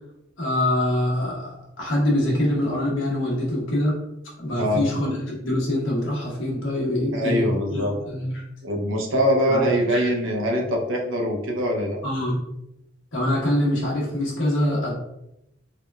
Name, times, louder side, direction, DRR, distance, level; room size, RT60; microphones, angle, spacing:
voice 1, 0.4-3.9 4.4-8.3 9.5-10.1 12.0-12.4 13.1-14.9, left 1 dB, 75° left, -4 dB, 1.1 m, -24 dB
voice 2, 7.1-7.9 8.6-12.0, equal, 80° right, 1 dB, 0.6 m, -23 dB
3.5 x 2.2 x 2.2 m, 0.84 s
head